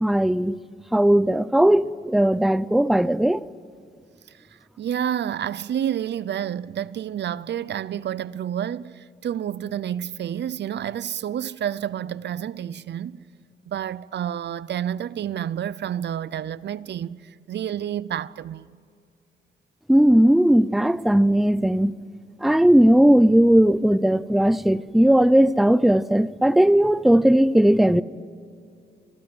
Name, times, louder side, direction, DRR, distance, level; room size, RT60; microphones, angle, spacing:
voice 1, 0.0-0.6 0.9-3.4 19.9-21.9 22.4-28.0, right 1 dB, ahead, 0.6 m, -17 dB
voice 2, 4.8-13.2 13.7-17.2 17.5-18.7, right 10 dB, 70° right, 0.7 m, -29 dB
26.0 x 21.5 x 7.9 m
cardioid pair, 110°, 19 cm